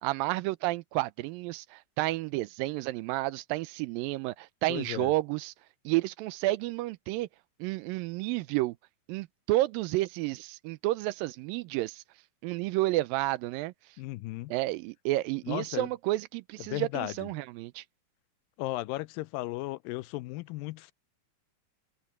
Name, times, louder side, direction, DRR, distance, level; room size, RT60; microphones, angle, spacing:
voice 1, 0.0-5.5 5.9-7.3 7.6-8.8 9.1-12.0 12.4-13.7 14.5-17.8, right 18 dB, 90° right, 2.4 m, -31 dB
voice 2, 4.7-5.1 14.0-14.5 15.4-15.9 16.7-17.3 18.6-20.9, left 18 dB, 85° left, 2.3 m, -35 dB
omnidirectional pair, 3.9 m